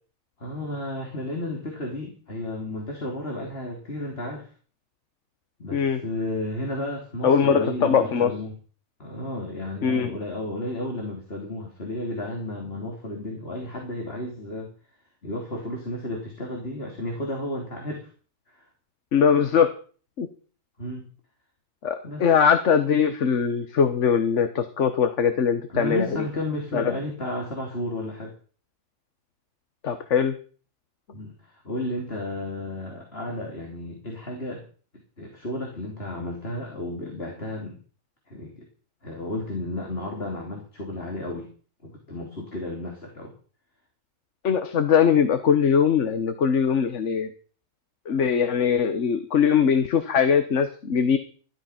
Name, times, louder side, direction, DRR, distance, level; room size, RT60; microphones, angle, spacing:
voice 1, 0.4-4.5 5.6-8.5 9.0-14.7 15.2-18.0 18.5-18.6 20.8-21.1 22.0-22.2 25.7-28.3 31.1-34.6 35.2-37.8 38.3-38.6 39.0-41.5 41.8-43.3, left 1 dB, 45° left, 0 dB, 3.6 m, -33 dB
voice 2, 5.7-6.0 7.2-8.3 9.8-10.1 19.1-19.7 20.2-20.3 21.8-26.3 26.7-26.9 29.8-30.4 44.4-47.3 48.1-51.2, left 7 dB, 60° left, 9 dB, 1.4 m, -21 dB
15.0 x 12.5 x 5.8 m, 0.41 s
omnidirectional pair, 1.4 m